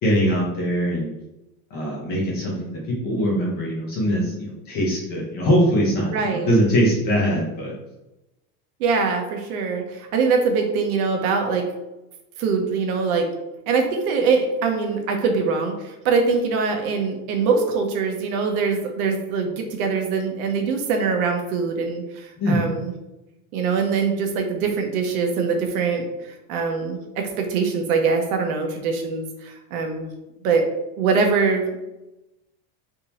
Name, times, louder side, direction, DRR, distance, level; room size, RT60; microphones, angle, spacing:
voice 1, 0.0-1.1 1.7-7.7 22.4-22.7, equal, 25° left, -3 dB, 0.6 m, -22 dB
voice 2, 6.1-6.5 8.8-11.7 12.4-13.3 13.7-22.9 23.5-26.0 26.5-30.1 30.4-30.7 31.0-31.8, right 5 dB, 85° right, 3 dB, 0.9 m, -23 dB
3.6 x 2.7 x 2.8 m, 0.97 s
cardioid pair, 180°, 42 cm